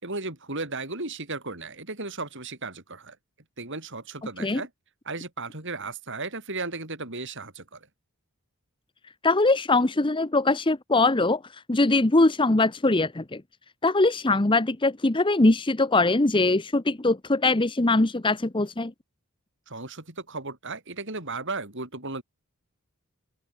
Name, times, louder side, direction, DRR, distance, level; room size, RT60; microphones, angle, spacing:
voice 1, 0.0-3.2 3.6-4.7 5.0-7.8 19.7-22.2, right 3 dB, 55° right, 6.6 m, -35 dB
voice 2, 9.2-11.4 11.7-13.4 13.8-18.9, left 2 dB, 20° left, 0.9 m, -22 dB
open air
head